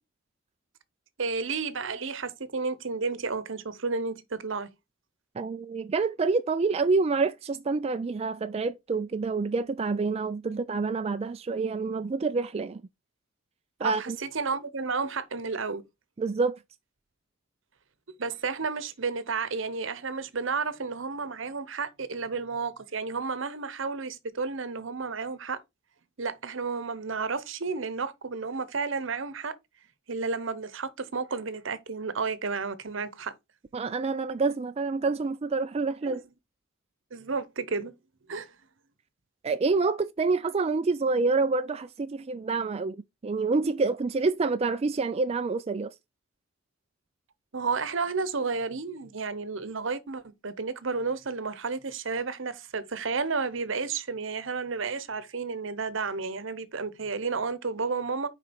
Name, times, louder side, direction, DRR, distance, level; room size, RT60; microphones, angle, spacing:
voice 1, 1.2-4.7 13.8-15.8 18.2-25.6 26.2-29.5 30.1-33.3 36.0-36.2 37.1-37.9 38.3-38.5 47.5-58.3, right 4 dB, 70° right, 0.9 m, -32 dB
voice 2, 5.4-12.8 13.8-14.2 16.2-16.6 33.7-36.2 39.4-43.0 43.2-45.9, right 4 dB, 30° right, 0.4 m, -27 dB
6.6 x 5.1 x 4.3 m
head